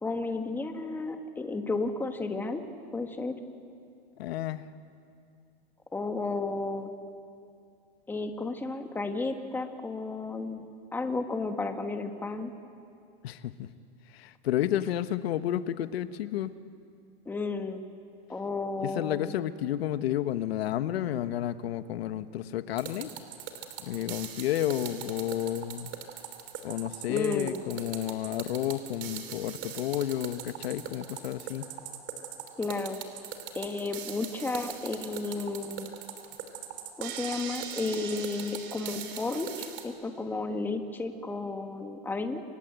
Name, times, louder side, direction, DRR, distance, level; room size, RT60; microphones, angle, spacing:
voice 1, 0.0-2.6 2.9-3.3 5.9-6.9 8.1-12.5 17.2-17.8 18.3-19.3 27.1-27.6 32.6-33.0 33.5-35.9 37.0-42.4, left 3 dB, 5° left, 5 dB, 1.5 m, -33 dB
voice 2, 4.2-4.6 13.2-13.7 14.1-16.5 18.8-23.1 23.9-25.9 26.6-31.7, left 12 dB, 70° left, 11 dB, 1.3 m, -31 dB
sound 1, 22.8-39.9, right 10 dB, 35° right, 3.3 m, -40 dB
29.5 x 24.5 x 8.2 m, 2.4 s
supercardioid pair, 155°, 32 cm